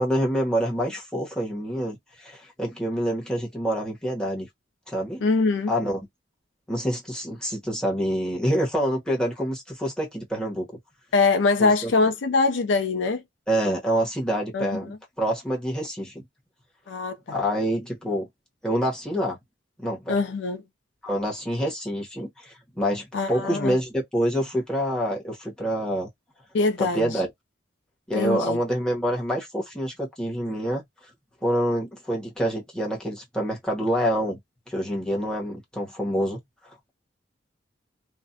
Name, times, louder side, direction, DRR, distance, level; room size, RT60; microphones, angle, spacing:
voice 1, 0.0-4.5 4.9-5.2 5.7-6.0 6.7-10.6 11.6-11.9 13.5-16.2 17.3-18.3 18.6-19.4 19.8-20.1 21.0-26.1 26.8-27.3 28.1-30.8 31.4-34.4 34.7-36.4, equal, 5° left, 1.0 m, -27 dB
voice 2, 5.2-5.7 11.1-13.2 14.5-14.8 16.9-17.4 20.1-20.6 23.1-23.8 26.5-27.2 28.1-28.6, left 3 dB, 75° left, 0.4 m, -23 dB
2.4 x 2.1 x 2.6 m
head